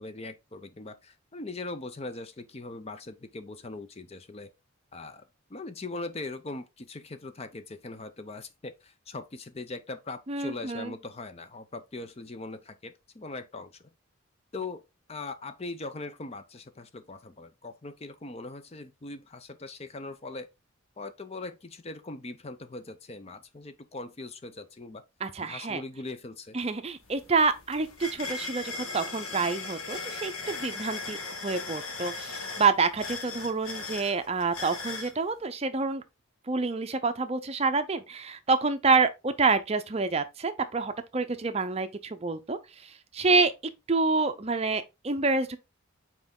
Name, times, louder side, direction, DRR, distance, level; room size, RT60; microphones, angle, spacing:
voice 1, 0.0-4.5 4.9-13.9 14.5-14.8 15.1-20.5 21.0-25.0 25.4-26.6, left 3 dB, 30° left, 0.5 m, -40 dB
voice 2, 10.3-10.9 25.2-25.8 26.5-36.0 36.5-43.5 43.9-45.6, right 4 dB, 30° right, 0.5 m, -28 dB
sound 1, 26.6-26.7 27.0-35.1, left 3 dB, 85° left, 1.6 m, -38 dB
5.9 x 4.4 x 3.7 m
head